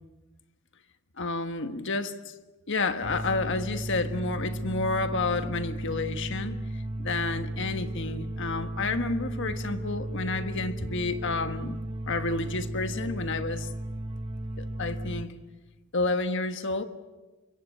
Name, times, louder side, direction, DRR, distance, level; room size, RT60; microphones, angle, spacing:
voice 1, 1.2-2.3 2.7-6.6 7.0-11.8 12.1-13.7 14.6-15.3 15.9-16.8, left 3 dB, 55° left, 1.5 m, -30 dB
sound 1, 3.0-15.3, right 1 dB, 25° right, 1.1 m, -35 dB
26.0 x 23.0 x 8.0 m
head